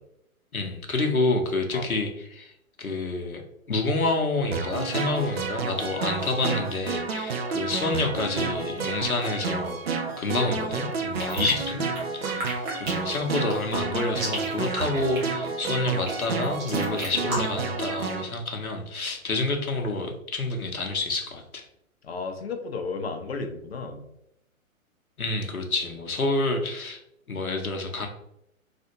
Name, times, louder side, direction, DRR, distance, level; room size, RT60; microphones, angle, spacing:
voice 1, 0.5-2.5 2.8-3.4 3.7-11.9 12.1-21.6 25.2-27.0 27.3-28.1, left 2 dB, 85° left, 3 dB, 0.8 m, -28 dB
sound 1, 4.5-18.2, right 5 dB, 50° right, 0.4 m, -30 dB
sound 2, 11.2-17.6, right 1 dB, 35° right, 1.3 m, -34 dB
voice 2, 22.0-24.0, left 4 dB, 50° left, 5 dB, 0.6 m, -34 dB
3.3 x 2.4 x 2.8 m, 0.79 s
figure-of-eight pair, 125°, 42 cm